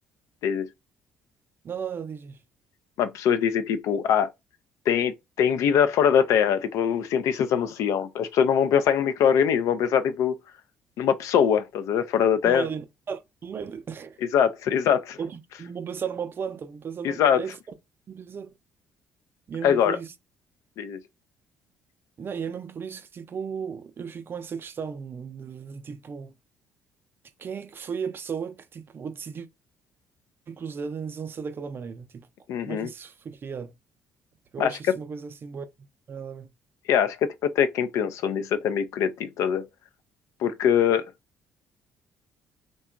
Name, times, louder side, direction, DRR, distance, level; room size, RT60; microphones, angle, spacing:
voice 1, 1.6-2.4 12.4-14.2 15.2-17.6 18.1-18.5 19.5-20.1 22.2-26.3 27.4-29.5 30.5-32.3 32.7-33.7 34.5-35.7 36.1-36.5, right 6 dB, 45° right, 0.4 m, -35 dB
voice 2, 3.0-4.3 4.9-10.4 11.0-12.7 14.2-15.2 17.0-17.4 19.6-20.0 20.8-21.0 32.5-32.9 34.6-34.7 36.9-39.6 40.4-41.1, left 8 dB, 70° left, 0.3 m, -23 dB
2.8 x 2.2 x 2.3 m
supercardioid pair, 65°, 5 cm